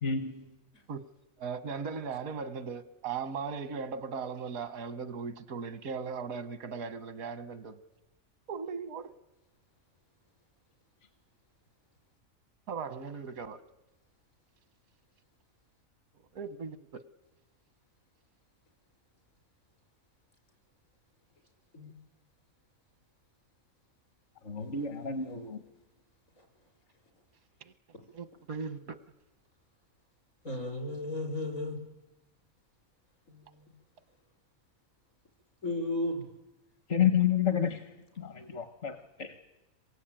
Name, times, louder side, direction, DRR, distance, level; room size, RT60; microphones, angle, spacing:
voice 1, 0.0-0.3 24.5-25.6 36.9-37.8 38.2-39.3, left 8 dB, 60° left, 1.4 m, -29 dB
voice 2, 1.4-7.8 8.5-9.2 12.7-13.6 16.3-17.0 27.6-27.7 28.1-29.0, right 5 dB, 85° right, 1.5 m, -38 dB
voice 3, 24.7-25.4 26.4-26.5 30.4-31.8 33.3-33.7 35.6-36.3, left 2 dB, 75° left, 5.4 m, -35 dB
26.5 x 22.5 x 8.9 m
omnidirectional pair, 1.4 m